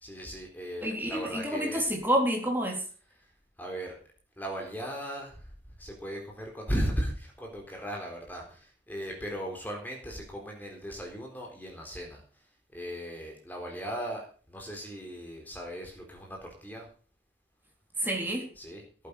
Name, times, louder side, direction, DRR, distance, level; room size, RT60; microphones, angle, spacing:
voice 1, 0.0-1.9 3.6-3.9 4.4-5.4 5.8-12.2 12.7-14.2 14.5-16.9 18.6-18.8, equal, 10° left, 1 dB, 4.0 m, -37 dB
voice 2, 0.8-2.8 18.0-18.5, equal, 10° right, 0 dB, 4.0 m, -28 dB
18.0 x 9.2 x 5.3 m, 0.40 s
head